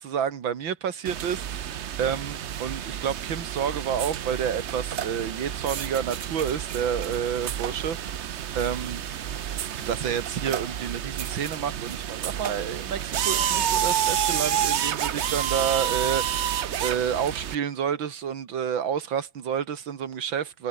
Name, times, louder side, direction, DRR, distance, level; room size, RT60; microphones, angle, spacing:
voice 1, 0.0-9.0 9.8-20.7, right 8 dB, 85° right, 2.4 m, -29 dB
sound 1, 1.0-17.5, right 9 dB, 60° right, 0.7 m, -29 dB
omnidirectional pair, 2.1 m